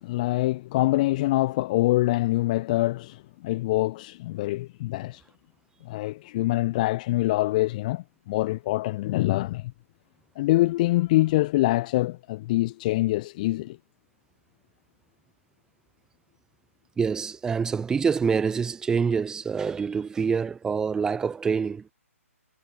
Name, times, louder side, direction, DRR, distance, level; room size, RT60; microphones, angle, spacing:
voice 1, 0.0-5.2 5.8-9.7 10.3-13.8, left 18 dB, 30° left, 1.5 m, -25 dB
voice 2, 17.0-21.8, right 6 dB, 10° right, 1.9 m, -26 dB
figure-of-eight pair, 130°, 8 cm